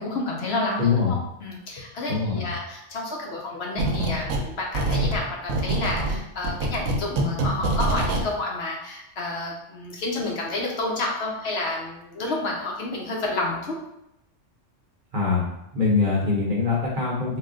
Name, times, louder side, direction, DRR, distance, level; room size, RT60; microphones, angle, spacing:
voice 1, 0.0-13.8, left 2 dB, 60° left, -1 dB, 0.8 m, -30 dB
voice 2, 0.8-1.1 2.1-2.5 15.1-15.4 15.7-17.4, left 4 dB, 45° right, -3 dB, 0.9 m, -23 dB
sound 1, 3.8-4.5 4.7-8.3, right 2 dB, 80° right, 1.0 m, -25 dB
4.1 x 2.1 x 3.7 m, 0.82 s
omnidirectional pair, 1.3 m